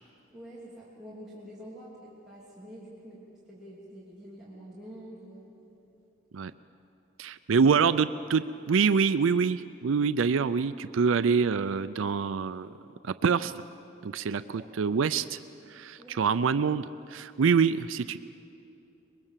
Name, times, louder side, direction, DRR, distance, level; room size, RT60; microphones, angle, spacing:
voice 1, 0.3-3.2 3.5-5.5 14.5-14.7 16.0-16.2, equal, ahead, -9 dB, 3.0 m, -46 dB
voice 2, 7.2-12.7 13.0-13.6 14.0-15.4 15.7-18.2, right 5 dB, 80° right, 13 dB, 0.4 m, -26 dB
23.5 x 21.0 x 7.4 m, 2.8 s
head